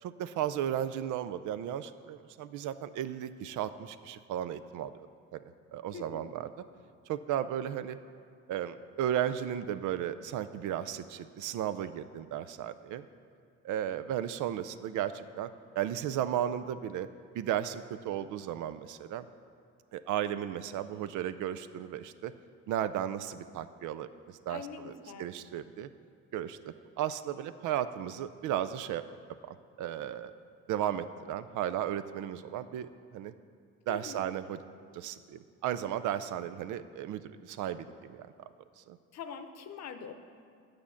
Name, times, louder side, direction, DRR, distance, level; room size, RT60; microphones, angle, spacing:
voice 1, 0.0-5.1 5.3-5.4 5.7-6.5 7.1-8.0 8.5-13.1 13.6-17.1 17.3-19.3 19.9-22.3 22.7-24.9 25.2-25.9 26.3-29.0 29.4-30.3 30.7-33.3 33.9-34.6 34.9-38.5 38.9-39.0, right 10 dB, 80° right, 13 dB, 0.5 m, -35 dB
voice 2, 5.9-6.3 24.5-25.3 33.9-34.2 39.1-40.1, left 6 dB, 60° left, 8 dB, 0.8 m, -43 dB
9.6 x 5.1 x 7.1 m, 2.3 s
cardioid pair, 90°, 30 cm